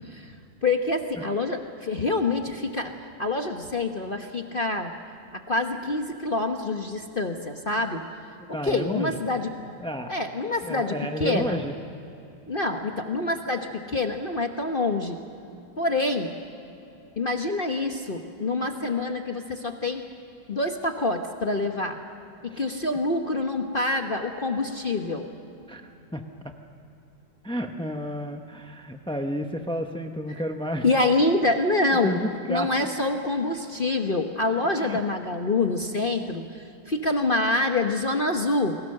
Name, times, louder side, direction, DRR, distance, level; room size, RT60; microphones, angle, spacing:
voice 1, 0.6-2.9 3.2-4.9 5.3-8.0 8.6-9.5 10.1-11.6 12.5-15.2 15.8-16.4 17.2-20.0 20.5-22.0 22.4-25.3 30.8-32.1 32.5-36.4 36.9-38.8, left 2 dB, 35° left, 4 dB, 1.0 m, -26 dB
voice 2, 8.5-9.2 9.8-10.1 10.6-11.7 22.5-22.8 25.7-26.2 27.4-30.9 32.0-32.9 34.8-35.0, equal, 5° left, 4 dB, 0.4 m, -31 dB
30.0 x 21.5 x 6.6 m, 2.8 s
omnidirectional pair, 2.0 m